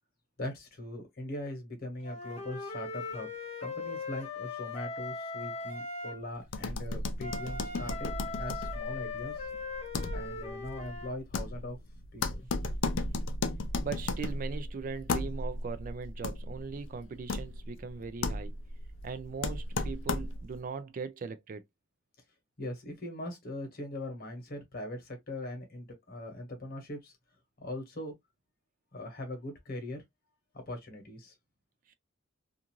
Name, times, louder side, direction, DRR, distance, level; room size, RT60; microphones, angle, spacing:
voice 1, 0.4-3.3 3.6-8.1 8.4-9.3 10.1-11.8 12.1-12.2 22.6-27.1 27.6-28.1 28.9-30.0 30.7-31.3, left 1 dB, 50° left, 1.0 m, -40 dB
Wind instrument woodwind instrument, 2.0-6.2 7.2-11.1, left 4 dB, 35° left, 0.7 m, -39 dB
sound 1, 6.5-20.6, left 2 dB, 70° left, 0.5 m, -35 dB
voice 2, 13.8-18.5 19.0-21.6 31.9-32.0, right 5 dB, 45° right, 0.3 m, -39 dB
2.5 x 2.5 x 2.9 m
head